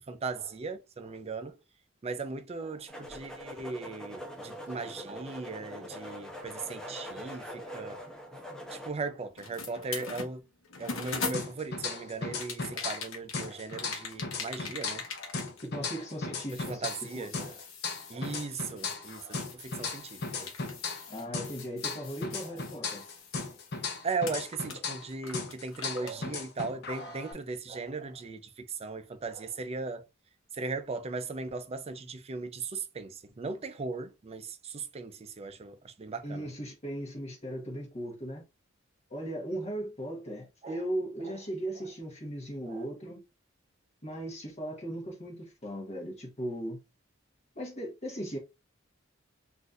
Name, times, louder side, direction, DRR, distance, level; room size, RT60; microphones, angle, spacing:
voice 1, 0.1-1.6 2.0-8.4 8.7-10.4 10.8-15.0 16.6-17.7 18.1-20.5 22.4-22.6 24.0-30.0 30.5-36.5 40.6-40.8 41.2-41.4 41.8-41.9 42.7-42.8, right 4 dB, 30° right, 0.4 m, -38 dB
sound 1, 2.9-8.9, equal, 5° left, 0.7 m, -43 dB
sound 2, 9.4-11.8 12.3-16.2 16.5-23.9 24.2-26.2, left 4 dB, 80° left, 0.9 m, -42 dB
sound 3, 11.3-13.1 13.3-17.1 17.3-21.1 21.3-25.1 25.3-27.3, left 4 dB, 55° left, 0.7 m, -37 dB
voice 2, 15.6-16.9 17.1-17.5 21.1-23.0 36.2-38.4 39.1-43.2 44.0-46.8 47.5-48.4, right 1 dB, 35° left, 1.0 m, -37 dB
3.9 x 2.5 x 2.4 m
head